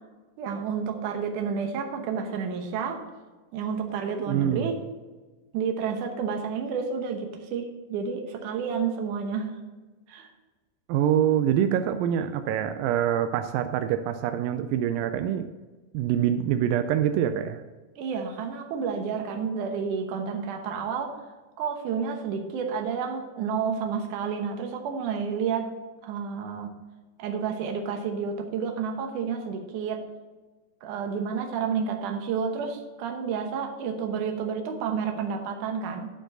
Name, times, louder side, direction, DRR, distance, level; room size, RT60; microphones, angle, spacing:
voice 1, 0.4-3.0 3.5-4.9 5.5-9.6 10.1-10.3 18.0-21.2 21.6-25.7 26.0-26.7 27.2-30.1 30.8-36.1, right 6 dB, 70° right, 4 dB, 2.5 m, -30 dB
voice 2, 4.3-4.7 10.9-15.5 15.9-17.6, right 10 dB, 85° right, 8 dB, 2.3 m, -25 dB
12.0 x 4.5 x 6.4 m, 1.3 s
omnidirectional pair, 3.9 m